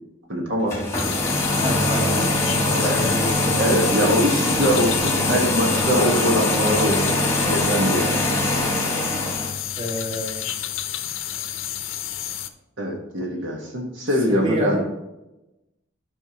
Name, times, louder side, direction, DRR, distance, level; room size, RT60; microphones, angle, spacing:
voice 1, 0.3-0.8 2.7-3.0 3.6-7.2 7.5-8.2 12.8-14.8, equal, 65° right, 0 dB, 1.3 m, -23 dB
sound 1, 0.6-9.5, left 1 dB, 15° left, 1.5 m, -22 dB
sound 2, 0.9-12.5, left 11 dB, 80° left, 0.6 m, -30 dB
voice 2, 1.5-3.6 9.8-10.5 14.3-14.8, left 1 dB, 25° right, -2 dB, 1.7 m, -29 dB
12.5 x 5.6 x 2.9 m, 0.97 s
head